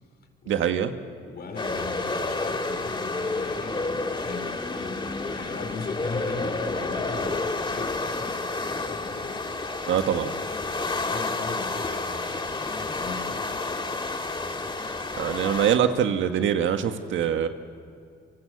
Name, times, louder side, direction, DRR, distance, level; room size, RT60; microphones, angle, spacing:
voice 1, 0.5-0.9 9.9-10.3 15.2-17.5, right 9 dB, 75° right, 7 dB, 1.7 m, -24 dB
voice 2, 1.2-9.4 10.4-10.5 10.8-13.5, left 4 dB, 55° left, 5 dB, 4.9 m, -39 dB
sound 1, 1.5-15.8, left 3 dB, 25° left, 2.2 m, -30 dB
28.5 x 25.0 x 8.0 m, 2.3 s
cardioid pair, 90°, 20 cm